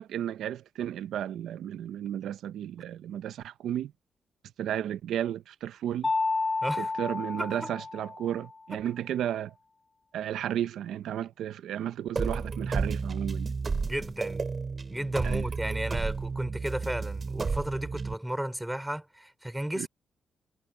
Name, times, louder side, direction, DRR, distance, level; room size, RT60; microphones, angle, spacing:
voice 1, 0.0-3.9 4.6-6.1 6.8-9.5 10.1-13.5 15.2-15.4 19.8-19.9, right 10 dB, 90° right, 0.6 m, -33 dB
Mallet percussion, 6.0-8.5, left 3 dB, 35° left, 2.2 m, -31 dB
voice 2, 6.6-6.9 7.4-7.7 13.8-14.4 14.9-19.9, right 1 dB, 5° right, 3.3 m, -34 dB
sound 1, 12.2-18.1, right 4 dB, 40° right, 4.8 m, -32 dB
cardioid pair, 75°, 0 cm